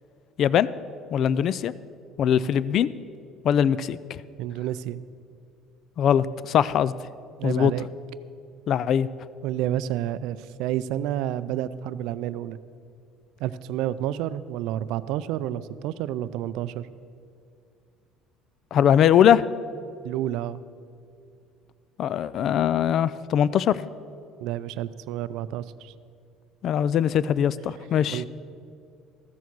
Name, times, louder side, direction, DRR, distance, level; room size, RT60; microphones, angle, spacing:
voice 1, 0.4-0.7 1.1-1.7 2.2-2.9 3.4-4.0 6.0-6.9 7.4-7.7 8.7-9.1 18.7-19.4 22.0-23.8 26.6-28.2, left 9 dB, 40° left, 18 dB, 0.3 m, -21 dB
voice 2, 4.4-5.0 7.4-7.9 9.4-12.6 13.4-16.9 20.0-20.6 24.4-25.9 28.1-28.3, right 12 dB, 65° right, 15 dB, 0.4 m, -30 dB
14.5 x 7.1 x 6.1 m, 2.5 s
cardioid pair, 170°, 0 cm